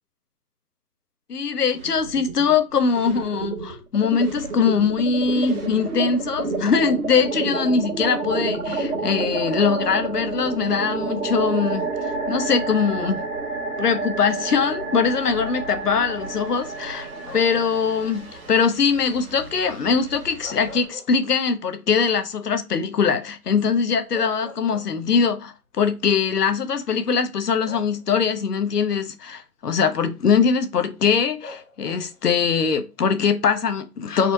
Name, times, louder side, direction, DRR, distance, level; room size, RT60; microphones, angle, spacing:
voice 1, 1.3-13.2 13.8-34.3, left 6 dB, 85° left, 0.9 m, -22 dB
sound 1, 1.7-2.5 2.8-20.9, right 3 dB, 65° right, 1.4 m, -30 dB
sound 2, 17.2-17.7 20.2-21.6 22.0-22.1 23.6-23.7 24.1-25.3 26.3-26.4 27.7-28.4 31.4-32.3, left 2 dB, 55° left, 1.0 m, -42 dB
4.1 x 2.7 x 4.5 m
hypercardioid pair, 175°, 46 cm